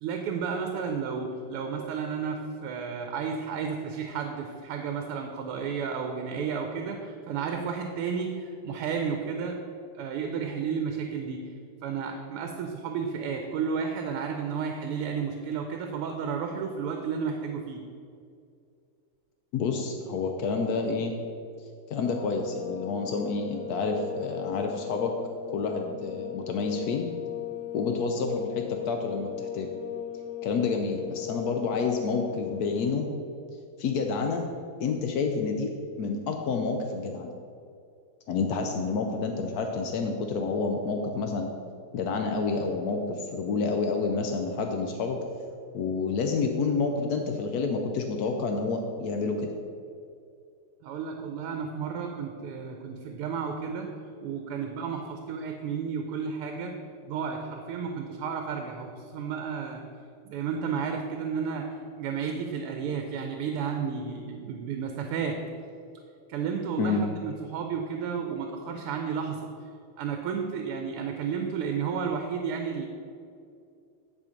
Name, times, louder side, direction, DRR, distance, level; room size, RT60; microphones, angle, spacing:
voice 1, 0.0-9.6 10.0-11.4 11.8-17.8 50.8-53.9 54.2-56.7 57.0-59.9 60.3-61.7 62.0-65.4 66.3-69.5 70.0-72.9, right 6 dB, 90° right, 4 dB, 1.6 m, -32 dB
voice 2, 19.5-21.1 21.6-25.1 25.5-27.1 27.7-29.7 30.4-33.1 33.8-34.5 34.8-35.7 36.0-37.3 38.3-41.5 41.9-45.2 45.7-49.5 66.8-67.1, left 4 dB, 85° left, 3 dB, 0.8 m, -29 dB
sound 1, 22.0-33.0, left 11 dB, 70° left, 2.1 m, -38 dB
9.8 x 4.2 x 5.1 m, 2.4 s
omnidirectional pair, 2.4 m